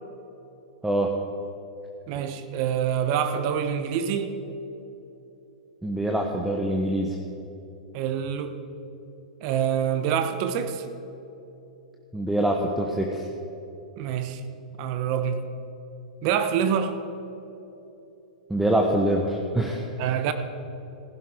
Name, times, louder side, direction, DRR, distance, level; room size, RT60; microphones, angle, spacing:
voice 1, 2.1-4.4 7.9-8.6 9.4-10.8 14.0-14.4 14.8-15.4 16.2-17.0 20.0-20.3, right 8 dB, 45° right, 9 dB, 1.1 m, -26 dB
voice 2, 5.8-7.2 12.1-13.3 18.5-19.8, right 1 dB, 5° right, 1 dB, 1.0 m, -24 dB
15.5 x 11.5 x 5.0 m, 3.0 s
hypercardioid pair, 120°, 4 cm